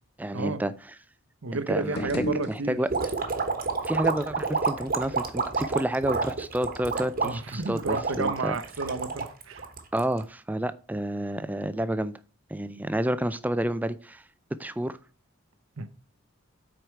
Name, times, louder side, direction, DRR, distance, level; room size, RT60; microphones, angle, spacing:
voice 1, 0.2-0.7 1.5-2.9 3.9-8.6 9.9-12.1 12.5-14.2 14.6-15.0, right 1 dB, 10° right, 0.4 m, -29 dB
voice 2, 1.4-2.8 7.2-9.7 15.8-15.9, right 3 dB, 65° right, 0.8 m, -31 dB
sound 1, 1.8-3.2, left 1 dB, 50° left, 0.9 m, -34 dB
sound 2, 2.9-10.2, right 4 dB, 45° right, 1.2 m, -29 dB
7.8 x 5.0 x 4.5 m
head